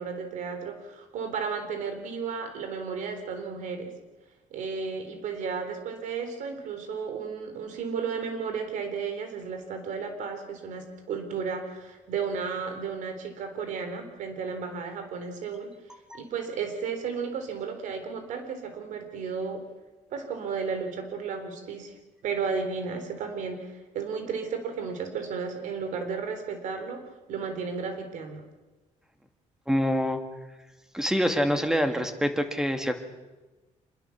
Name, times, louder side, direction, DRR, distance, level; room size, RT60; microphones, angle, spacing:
voice 1, 0.0-3.9 4.5-15.7 16.1-19.6 20.1-21.9 22.2-27.0 27.3-28.4, right 5 dB, 80° right, 7 dB, 3.8 m, -33 dB
voice 2, 29.7-30.2 30.9-32.9, equal, 5° right, 6 dB, 2.1 m, -25 dB
26.0 x 21.5 x 7.2 m, 1.2 s
cardioid pair, 155°, 13 cm